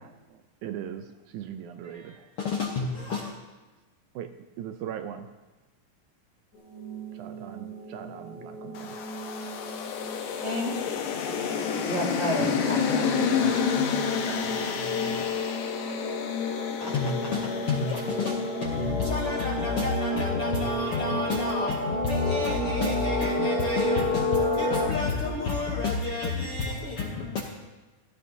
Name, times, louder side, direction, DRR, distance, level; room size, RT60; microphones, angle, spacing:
voice 1, 0.0-2.3 4.2-5.3 7.1-9.1 12.4-12.7, right 9 dB, 80° right, 7 dB, 2.0 m, -40 dB
voice 2, 1.9-3.3 16.8-27.4, left 4 dB, 65° left, -1 dB, 1.4 m, -30 dB
sound 1, 6.5-24.9, left 2 dB, 35° left, 2.7 m, -31 dB
sound 2, 8.8-19.1, left 7 dB, 85° left, 2.5 m, -30 dB
voice 3, 10.4-10.7 11.9-15.2, right 1 dB, 35° right, -4 dB, 3.1 m, -33 dB
16.5 x 15.0 x 2.7 m, 1.2 s
omnidirectional pair, 3.7 m